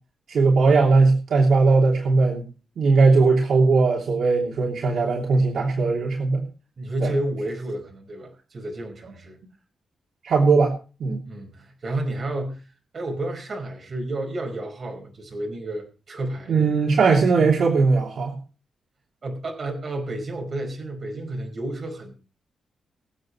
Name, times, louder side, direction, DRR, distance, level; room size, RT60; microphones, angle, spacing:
voice 1, 0.3-2.4 2.8-6.4 7.0-7.1 10.2-10.7 11.0-11.2 16.5-18.3, right 4 dB, 55° right, 3.0 m, -19 dB
voice 2, 6.8-9.4 11.3-12.7 12.9-16.8 19.2-22.1, right 1 dB, 35° right, 5.2 m, -31 dB
24.0 x 8.1 x 3.2 m
wide cardioid pair, 175°, 0 cm